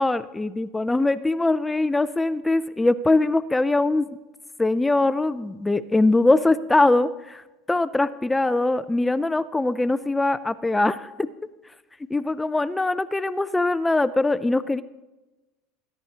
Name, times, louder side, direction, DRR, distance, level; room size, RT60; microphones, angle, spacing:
voice 1, 0.0-4.1 4.6-11.3 12.1-14.8, left 2 dB, 10° left, 14 dB, 0.3 m, -22 dB
21.0 x 10.5 x 2.8 m, 1.1 s
supercardioid pair, 125°, 0 cm